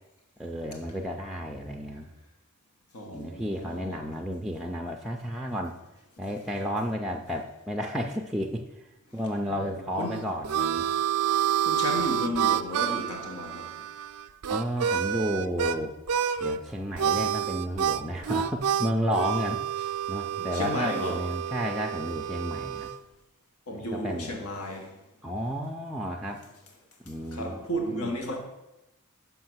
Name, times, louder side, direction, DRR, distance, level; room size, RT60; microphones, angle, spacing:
voice 1, 0.4-2.1 3.1-5.8 6.2-8.6 9.1-10.9 14.5-15.9 16.4-19.6 20.1-22.9 23.7-24.4 25.2-26.4 27.0-28.1, equal, ahead, 0.4 m, -32 dB
voice 2, 2.9-4.0 10.0-10.3 11.6-13.7 20.5-21.2 23.7-24.9 27.3-28.4, equal, 70° left, 1.1 m, -33 dB
Harmonica, 10.0-15.8 16.1-16.6 17.0-23.0, right 9 dB, 80° right, 0.4 m, -28 dB
5.8 x 5.5 x 6.0 m
head